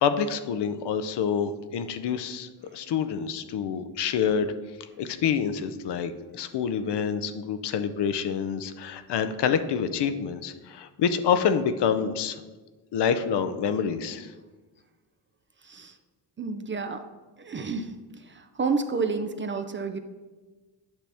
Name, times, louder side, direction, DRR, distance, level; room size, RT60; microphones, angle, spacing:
voice 1, 0.0-4.5 5.0-12.4 12.9-14.3, left 7 dB, 65° left, 9 dB, 0.6 m, -27 dB
voice 2, 15.6-16.0 16.4-17.0 17.4-20.0, right 4 dB, 25° right, 7 dB, 0.5 m, -30 dB
8.9 x 5.7 x 3.4 m, 1.3 s
cardioid pair, 105°, 45 cm